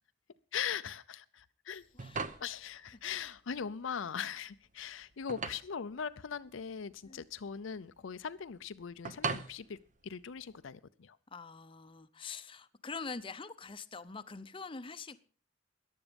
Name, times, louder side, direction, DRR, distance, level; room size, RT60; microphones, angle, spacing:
voice 1, 0.5-1.8 2.4-9.8 10.0-11.2, left 7 dB, 75° left, 0.5 m, -40 dB
sound 1, 1.7-10.7, right 4 dB, 40° right, 0.8 m, -43 dB
voice 2, 1.9-2.3 7.0-7.2 11.3-15.2, left 4 dB, 25° left, 0.7 m, -44 dB
14.5 x 10.5 x 5.2 m
head